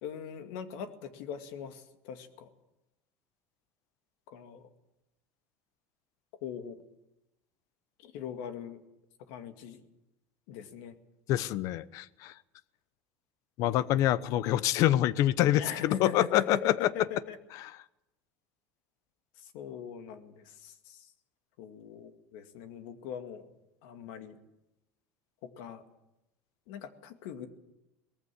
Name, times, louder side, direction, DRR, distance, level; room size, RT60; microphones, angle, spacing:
voice 1, 0.0-2.5 4.3-4.7 6.4-6.8 8.0-8.8 9.3-9.8 10.5-11.0 15.6-17.4 19.4-21.1 21.6-23.5 23.8-24.4 25.4-25.8 26.7-27.5, left 8 dB, 70° left, 7 dB, 2.2 m, -40 dB
voice 2, 11.3-12.3 13.6-16.9 17.5-17.7, left 13 dB, 55° left, 17 dB, 0.9 m, -26 dB
19.5 x 15.0 x 9.9 m, 0.94 s
supercardioid pair, 130°, 7 cm